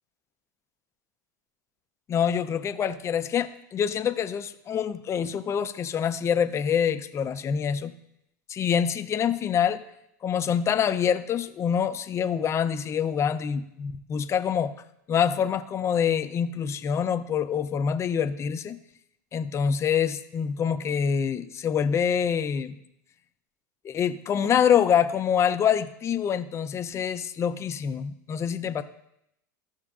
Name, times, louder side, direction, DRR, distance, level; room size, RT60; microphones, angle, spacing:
voice 1, 2.1-7.9 8.5-9.8 10.2-14.7 15.1-18.8 19.3-22.8 23.8-28.8, left 8 dB, 30° left, 10 dB, 0.5 m, -26 dB
14.0 x 6.3 x 2.4 m, 0.79 s
hypercardioid pair, 100°, 10 cm